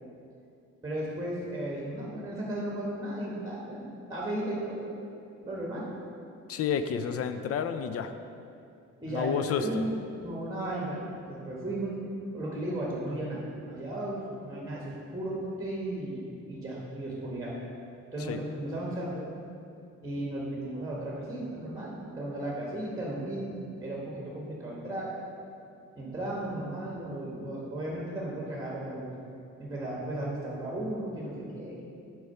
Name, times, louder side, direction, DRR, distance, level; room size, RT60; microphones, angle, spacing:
voice 1, 0.8-4.9 5.4-5.9 9.0-9.9 10.2-11.9 12.3-17.5 18.1-19.2 20.0-25.1 25.9-29.1 29.6-31.8, right 1 dB, 10° right, -5 dB, 1.2 m, -35 dB
voice 2, 6.5-8.1 9.1-9.8 18.3-18.4, left 7 dB, 50° left, 9 dB, 0.4 m, -30 dB
4.8 x 4.5 x 5.4 m, 2.5 s
cardioid pair, 90°, 30 cm